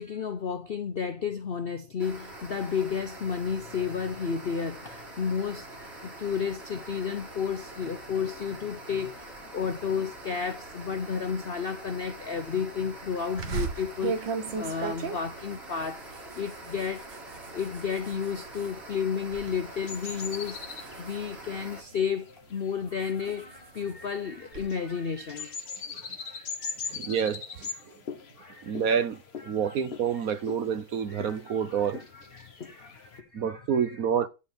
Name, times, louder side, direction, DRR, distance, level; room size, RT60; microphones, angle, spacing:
voice 1, 0.0-20.6 21.0-25.6 25.9-27.2 27.8-27.9 28.4-28.8 29.4-29.8 31.1-34.0, left 6 dB, 75° left, 0.5 m, -33 dB
sound 1, 2.0-21.8, right 2 dB, 35° right, 2.5 m, -44 dB
sound 2, 13.4-18.8 19.1-19.5 19.9-21.9 22.5-24.7, right 5 dB, 85° right, 2.0 m, -37 dB
sound 3, 19.7-33.2, left 5 dB, 40° left, 1.2 m, -42 dB
voice 2, 26.9-27.7 28.6-32.0 33.3-34.3, right 7 dB, 55° right, 1.2 m, -28 dB
11.5 x 4.4 x 7.1 m
omnidirectional pair, 2.0 m